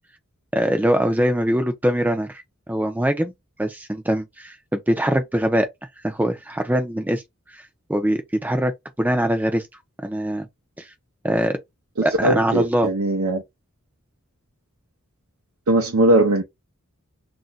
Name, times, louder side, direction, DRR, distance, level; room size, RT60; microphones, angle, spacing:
voice 1, 0.5-2.4 2.7-3.3 3.6-5.7 6.0-7.2 7.5-7.6 7.9-8.7 9.0-9.7 10.0-10.5 10.8-10.9 11.2-11.6 12.0-12.9, equal, 5° right, 0.5 m, -22 dB
voice 2, 12.0-13.4 15.7-16.4, right 1 dB, 75° right, 0.6 m, -19 dB
2.5 x 2.2 x 3.9 m
head